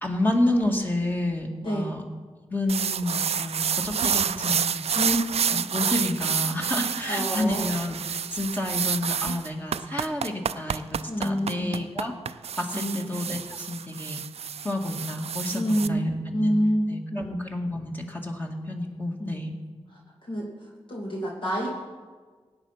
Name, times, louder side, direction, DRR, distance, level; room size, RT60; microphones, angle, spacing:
voice 1, 0.0-2.0 2.5-4.8 5.5-12.1 12.6-14.2 14.6-16.6 16.9-19.5, left 1 dB, 15° left, 1 dB, 2.1 m, -29 dB
voice 2, 1.6-1.9 4.9-5.3 7.1-7.6 11.1-11.7 12.7-13.0 15.5-16.1 16.3-17.3 19.2-19.5 20.3-20.5 20.9-21.7, equal, 55° left, -3 dB, 2.5 m, -27 dB
sound 1, 2.7-15.9, right 7 dB, 75° right, 0.4 m, -29 dB
17.0 x 9.1 x 5.8 m, 1.5 s
wide cardioid pair, 70°, 11 cm